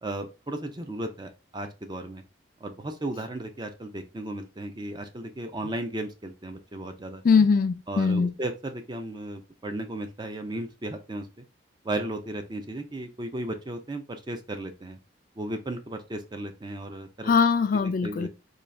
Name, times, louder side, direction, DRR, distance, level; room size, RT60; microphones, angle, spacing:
voice 1, 0.0-2.2 2.6-7.2 7.9-11.4 11.8-15.0 15.4-17.3 17.8-18.3, right 1 dB, 20° right, 0.5 m, -35 dB
voice 2, 7.2-8.3 17.3-18.3, left 5 dB, 45° left, 0.3 m, -21 dB
3.9 x 2.3 x 3.2 m
head